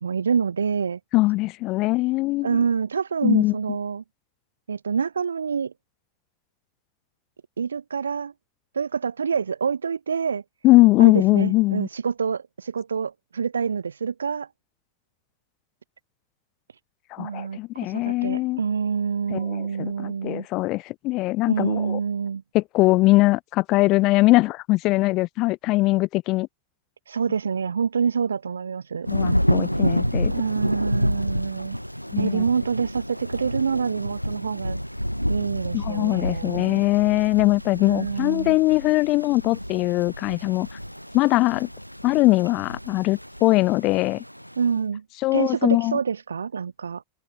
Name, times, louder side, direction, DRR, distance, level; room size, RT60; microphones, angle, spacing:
voice 1, 0.0-1.0 2.4-4.0 4.7-5.7 7.6-8.3 8.7-10.4 11.0-14.5 17.2-20.5 21.5-22.4 27.1-29.1 30.3-31.8 32.2-34.8 35.3-36.8 37.8-38.6 44.6-45.0 45.3-47.0, right 6 dB, 70° right, 0.8 m, -26 dB
voice 2, 1.1-2.6 3.2-3.5 10.6-11.9 17.1-18.6 19.3-22.0 22.5-26.5 29.1-30.3 32.1-32.4 35.7-40.7 41.1-41.7 42.0-44.2 45.2-46.0, left 20 dB, 40° left, 1.8 m, -21 dB
Thunder / Rain, 29.0-44.6, equal, 90° left, 1.0 m, -29 dB
figure-of-eight pair, 90°, 0 cm